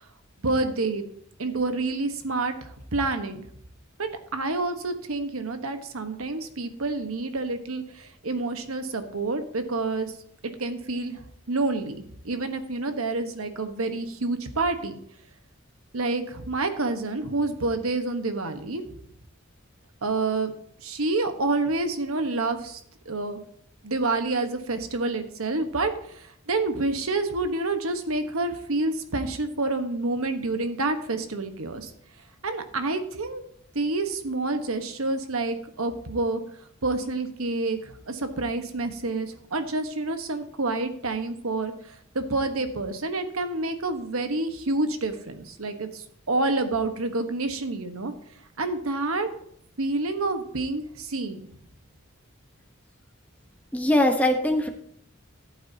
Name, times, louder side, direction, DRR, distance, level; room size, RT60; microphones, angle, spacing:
voice 1, 0.4-1.0 1.4-3.5 4.0-10.1 10.4-11.2 11.5-15.0 15.9-18.8 20.0-20.5 20.8-22.8 23.0-23.4 23.8-31.9 32.4-33.4 33.7-36.4 36.8-48.1 48.6-49.3 49.8-51.4, right 3 dB, 85° right, 7 dB, 1.3 m, -28 dB
voice 2, 53.7-54.7, left 1 dB, 5° left, 3 dB, 1.1 m, -21 dB
14.5 x 8.6 x 2.8 m, 0.66 s
head